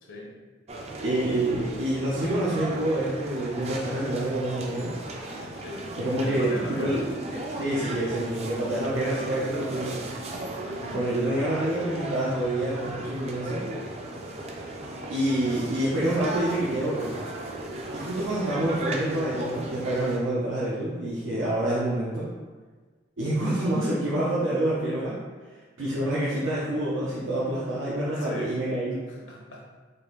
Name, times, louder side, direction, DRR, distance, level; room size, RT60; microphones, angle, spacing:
voice 1, 0.0-0.3 5.5-5.9 6.2-7.1 10.7-11.0 28.2-28.5 29.1-29.6, left 1 dB, 80° left, -3 dB, 0.9 m, -38 dB
sound 1, 0.7-20.2, right 2 dB, 35° right, 0.4 m, -36 dB
voice 2, 1.0-4.9 6.0-10.0 10.9-13.6 15.1-17.2 17.9-22.3 23.2-25.2 25.8-29.0, right 1 dB, 90° right, -8 dB, 0.8 m, -27 dB
4.0 x 2.6 x 3.9 m, 1.4 s
head